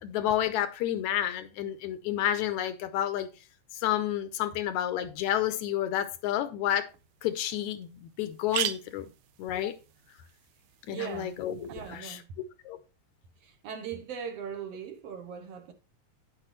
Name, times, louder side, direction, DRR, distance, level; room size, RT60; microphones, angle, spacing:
voice 1, 0.0-3.3 3.8-6.9 7.2-9.1 9.4-9.7 10.9-12.2 12.7-12.8, left 11 dB, 85° left, 2.1 m, -30 dB
sound 1, 6.9-7.0 7.5-7.6 7.8-7.9 8.2-12.0, right 12 dB, 85° right, 2.0 m, -38 dB
voice 2, 10.9-11.4 11.7-12.4 13.4-15.7, right 7 dB, 65° right, 1.7 m, -39 dB
9.7 x 7.9 x 3.0 m
omnidirectional pair, 3.4 m